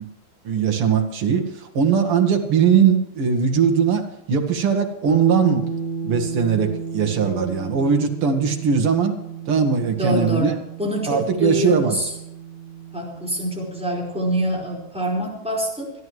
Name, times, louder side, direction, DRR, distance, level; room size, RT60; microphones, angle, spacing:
voice 1, 0.4-5.7 6.0-9.2 9.5-10.5 11.1-12.0, right 6 dB, 85° right, 4 dB, 2.6 m, -20 dB
sound 1, 5.1-14.9, right 4 dB, 35° left, 2.6 m, -33 dB
voice 2, 10.0-12.1 12.9-16.0, equal, 5° right, -2 dB, 4.7 m, -25 dB
25.5 x 11.0 x 3.2 m, 0.85 s
omnidirectional pair, 2.4 m